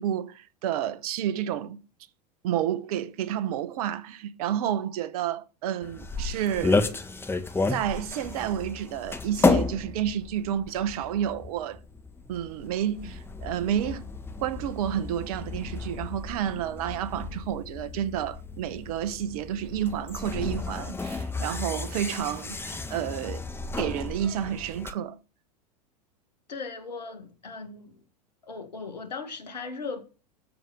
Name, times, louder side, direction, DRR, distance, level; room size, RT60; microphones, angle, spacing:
voice 1, 0.0-1.8 2.4-6.8 7.7-11.8 12.3-14.0 14.4-23.4 23.8-25.2, right 10 dB, 60° right, 1.1 m, -30 dB
sound 1, 5.8-24.9, left 3 dB, 10° left, 1.6 m, -32 dB
voice 2, 26.5-28.0 28.4-30.0, left 4 dB, 80° left, 2.2 m, -38 dB
13.5 x 5.1 x 7.6 m
hypercardioid pair, 90°, 21 cm